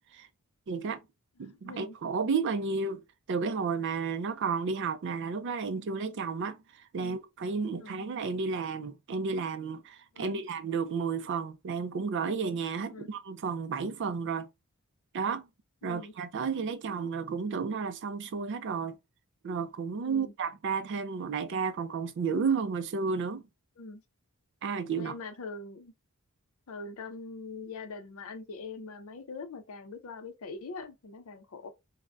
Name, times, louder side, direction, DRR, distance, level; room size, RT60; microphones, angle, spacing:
voice 1, 0.7-1.0 1.4-14.5 15.1-15.5 15.8-19.0 19.4-23.4 24.6-25.1, right 5 dB, 55° right, 0.4 m, -32 dB
voice 2, 1.5-2.0 7.0-7.2 7.8-8.0 10.1-10.4 12.9-13.1 15.8-16.1 20.0-20.3 23.8-24.0 25.0-25.9 26.7-31.7, left 3 dB, 65° left, 0.5 m, -43 dB
3.3 x 2.1 x 2.4 m
head